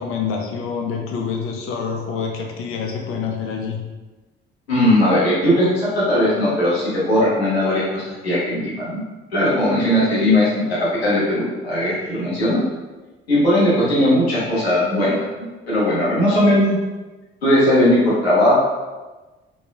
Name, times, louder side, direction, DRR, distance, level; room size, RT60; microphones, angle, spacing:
voice 1, 0.0-3.8, left 6 dB, 45° left, 1 dB, 0.5 m, -26 dB
voice 2, 4.7-9.0 9.3-12.6 13.3-16.8 17.4-18.7, left 1 dB, 85° left, -9 dB, 0.7 m, -18 dB
3.0 x 2.2 x 2.3 m, 1.2 s
figure-of-eight pair, 45°, 31 cm